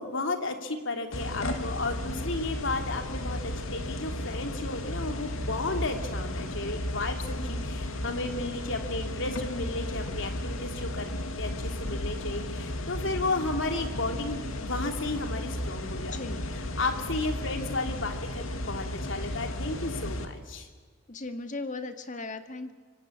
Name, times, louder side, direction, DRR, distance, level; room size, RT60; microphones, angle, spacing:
voice 1, 0.0-11.1 11.4-20.7, left 2 dB, 65° left, 5 dB, 2.9 m, -33 dB
sound 1, 1.1-20.3, left 1 dB, 85° left, 2.5 m, -34 dB
voice 2, 16.1-16.4 21.1-22.7, left 3 dB, 40° left, 8 dB, 1.9 m, -37 dB
25.5 x 25.0 x 8.5 m, 1.5 s
head